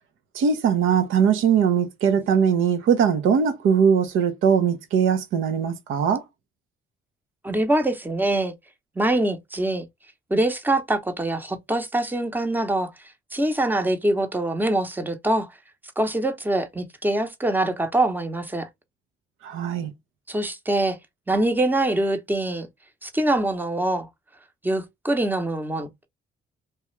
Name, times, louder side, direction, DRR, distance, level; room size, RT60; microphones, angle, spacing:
voice 1, 0.3-6.2 19.4-19.9, right 7 dB, 85° right, 0.8 m, -21 dB
voice 2, 7.4-8.5 9.0-9.8 10.3-12.9 13.3-15.5 16.0-18.7 20.3-21.0 21.3-22.7 23.0-24.1 24.6-26.1, right 1 dB, 10° right, 0.7 m, -24 dB
3.2 x 2.3 x 3.0 m
cardioid pair, 90°, 20 cm